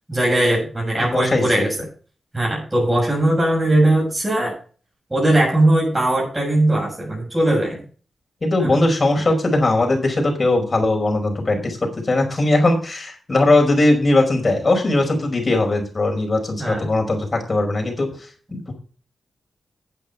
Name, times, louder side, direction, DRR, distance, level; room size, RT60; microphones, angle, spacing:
voice 1, 0.1-1.8 2.3-4.5 5.1-7.8 8.6-8.8 9.2-9.4 16.6-16.9, right 1 dB, 20° right, -3 dB, 7.2 m, -19 dB
voice 2, 1.0-1.4 8.4-11.8 12.1-18.1, left 2 dB, 45° left, 2 dB, 5.2 m, -19 dB
10.0 x 8.5 x 5.6 m, 0.40 s
cardioid pair, 45°, 0 cm